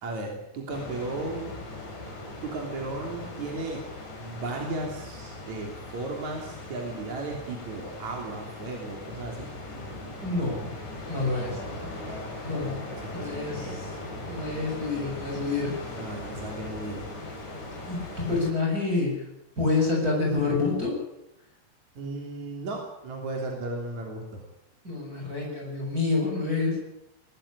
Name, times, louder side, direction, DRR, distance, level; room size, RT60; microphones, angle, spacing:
voice 1, 0.0-1.6 2.4-3.8 4.2-9.5 11.5-12.3 12.9-13.9 16.0-17.1 22.0-24.4, right 2 dB, 40° right, 1 dB, 3.9 m, -35 dB
sound 1, 0.7-18.5, left 2 dB, 35° left, 5.9 m, -39 dB
voice 2, 10.2-10.7 11.1-11.6 12.4-12.8 13.1-13.9 14.3-15.8 17.8-19.3 19.6-21.0 24.8-26.8, left 3 dB, 15° right, -2 dB, 7.2 m, -27 dB
21.0 x 15.0 x 10.0 m, 0.83 s
omnidirectional pair, 6.0 m